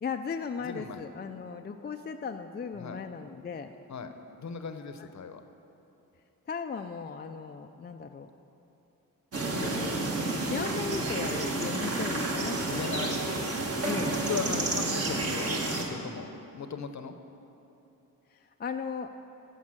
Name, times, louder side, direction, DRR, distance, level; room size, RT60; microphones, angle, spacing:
voice 1, 0.0-3.7 6.5-8.3 9.3-12.6 13.8-14.2 18.6-19.1, left 5 dB, 30° left, 5 dB, 0.4 m, -37 dB
voice 2, 0.6-1.0 2.7-3.0 3.9-4.1 4.4-5.4 12.7-13.5 13.8-16.3 16.5-17.1, left 6 dB, 55° left, 8 dB, 0.8 m, -38 dB
sound 1, 9.3-15.8, right 2 dB, 45° right, 1.4 m, -30 dB
14.0 x 5.4 x 7.4 m, 2.9 s
wide cardioid pair, 100°, 34 cm